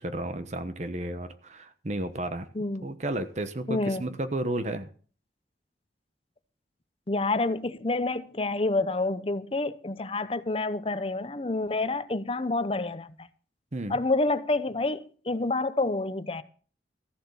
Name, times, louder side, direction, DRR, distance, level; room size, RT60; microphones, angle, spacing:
voice 1, 0.0-2.5 2.8-4.9 13.7-14.0, right 1 dB, 40° right, 1.0 m, -32 dB
voice 2, 2.5-2.9 3.7-4.0 7.1-13.3 13.9-16.4, left 2 dB, 30° left, 0.8 m, -28 dB
14.5 x 7.1 x 7.1 m
head